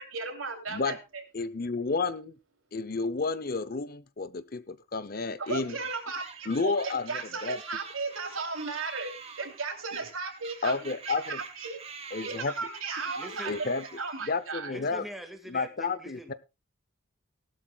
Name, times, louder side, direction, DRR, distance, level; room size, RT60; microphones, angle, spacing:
voice 1, 0.0-1.2 5.4-10.8 11.1-11.8 12.2-13.7 14.0-14.7, right 4 dB, 85° right, 4 dB, 3.0 m, -35 dB
voice 2, 1.3-2.3 2.7-5.8 6.5-7.1 7.4-7.6 10.6-11.4 12.1-12.5 13.5-13.8 14.2-15.0 15.5-16.3, left 4 dB, 45° left, 15 dB, 0.7 m, -31 dB
sound 1, 5.4-14.5, right 5 dB, 30° right, 1.5 m, -47 dB
voice 3, 13.2-13.6 14.7-16.3, equal, ahead, 5 dB, 1.8 m, -43 dB
18.5 x 12.0 x 2.3 m, 0.25 s
head